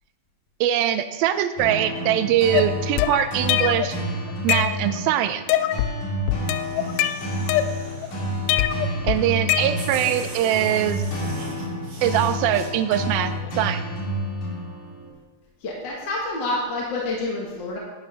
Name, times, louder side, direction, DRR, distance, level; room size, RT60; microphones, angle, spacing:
voice 1, 0.6-4.0 4.4-5.4 9.0-11.0 12.0-13.8, right 11 dB, 90° right, 11 dB, 2.5 m, -22 dB
sound 1, 1.6-15.1, equal, 65° left, 3.7 m, -30 dB
sound 2, 2.5-3.9 4.3-5.1 5.5-6.0 6.3-8.1 8.5-10.1, left 11 dB, 85° left, 1.8 m, -24 dB
sound 3, 6.3-8.7 9.3-9.4 9.7-12.7, right 2 dB, 35° right, 2.5 m, -39 dB
voice 2, 15.6-17.8, left 2 dB, 45° left, -3 dB, 1.6 m, -28 dB
11.0 x 10.5 x 3.5 m, 1.2 s
omnidirectional pair, 4.1 m